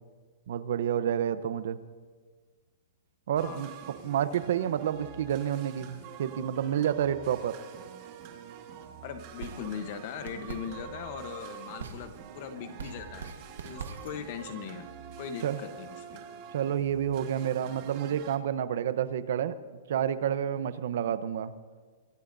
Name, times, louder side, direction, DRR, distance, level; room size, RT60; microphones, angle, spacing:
voice 1, 0.5-1.8 3.3-3.7 4.0-7.6 15.4-15.6 16.5-19.5 19.9-21.5, right 9 dB, 65° right, 13 dB, 0.8 m, -29 dB
sound 1, 3.4-18.4, right 8 dB, 35° right, 1.6 m, -46 dB
voice 2, 9.0-13.3 13.6-14.9 15.2-16.2 21.0-21.1, left 7 dB, 45° left, 8 dB, 1.0 m, -40 dB
sound 2, 9.3-14.3, right 5 dB, 90° right, 1.5 m, -44 dB
24.5 x 16.0 x 2.7 m, 1.5 s
hypercardioid pair, 155°, 0 cm